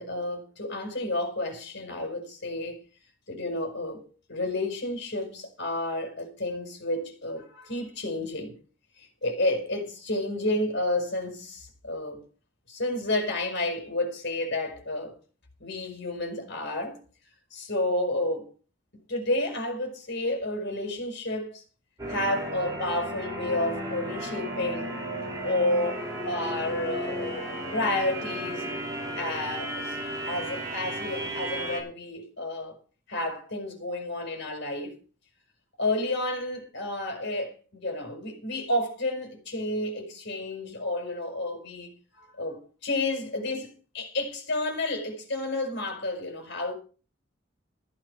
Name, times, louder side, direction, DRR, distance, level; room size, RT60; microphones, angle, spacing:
voice 1, 0.0-2.8 3.3-8.6 9.0-12.2 12.7-15.2 15.6-17.0 17.5-18.5 19.1-21.6 22.1-24.9 25.4-28.7 29.2-32.8 33.1-35.0 35.8-37.5 37.8-46.7, left 1 dB, 65° left, 4.9 m, -31 dB
sound 1, 22.0-31.8, right 1 dB, 20° right, 6.3 m, -34 dB
15.0 x 9.1 x 5.6 m
head